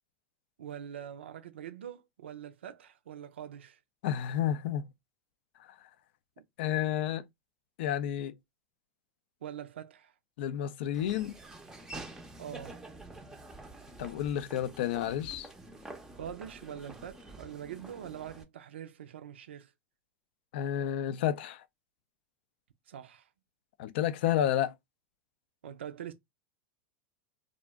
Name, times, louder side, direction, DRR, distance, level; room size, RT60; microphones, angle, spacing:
voice 1, 0.6-3.8 6.4-6.5 9.4-10.1 12.4-12.8 16.2-19.7 22.9-23.3 25.6-26.1, right 9 dB, 80° right, 0.4 m, -44 dB
voice 2, 4.0-4.9 6.6-7.2 7.8-8.3 10.4-11.4 14.0-15.5 20.5-21.6 23.8-24.7, left 11 dB, 65° left, 0.4 m, -30 dB
Laughter / Walk footsteps, 10.9-18.4, right 2 dB, 10° right, 0.5 m, -48 dB
2.5 x 2.1 x 3.4 m
hypercardioid pair, 95°, 6 cm